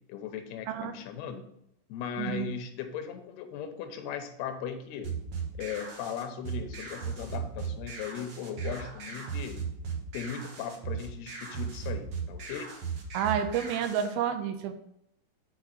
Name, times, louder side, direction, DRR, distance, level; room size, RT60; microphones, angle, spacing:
voice 1, 0.1-1.5 1.9-5.1 5.6-9.6 10.1-12.8, left 8 dB, 90° left, 7 dB, 2.9 m, -38 dB
sound 1, 5.0-14.1, right 6 dB, 65° right, 1.4 m, -37 dB
voice 2, 13.1-14.7, right 8 dB, 85° right, 8 dB, 2.4 m, -29 dB
7.0 x 4.5 x 6.4 m, 0.76 s
omnidirectional pair, 4.5 m